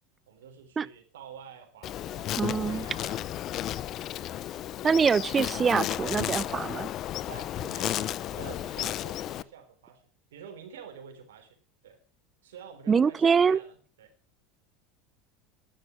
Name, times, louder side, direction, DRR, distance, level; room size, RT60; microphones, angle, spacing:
voice 1, 0.3-3.9 7.2-10.0 10.3-11.6 11.8-12.0 12.4-14.1, right 7 dB, 85° right, 3.6 m, -48 dB
Insect, 1.8-9.4, left 12 dB, 45° left, 0.6 m, -33 dB
voice 2, 2.4-2.9 4.8-6.9 12.9-13.6, right 6 dB, 25° right, 0.6 m, -24 dB
11.0 x 11.0 x 6.0 m
supercardioid pair, 100°, 0 cm